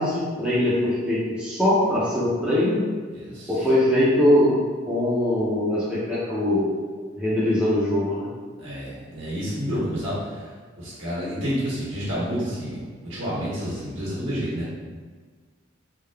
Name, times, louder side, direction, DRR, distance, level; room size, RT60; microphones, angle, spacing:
voice 1, 0.0-2.8 3.5-4.6 4.9-6.7 7.2-8.3, left 1 dB, 5° right, -10 dB, 0.7 m, -22 dB
voice 2, 3.1-3.5 8.6-10.5 10.8-14.7, equal, 65° right, -9 dB, 1.5 m, -29 dB
3.7 x 2.5 x 3.4 m, 1.5 s
head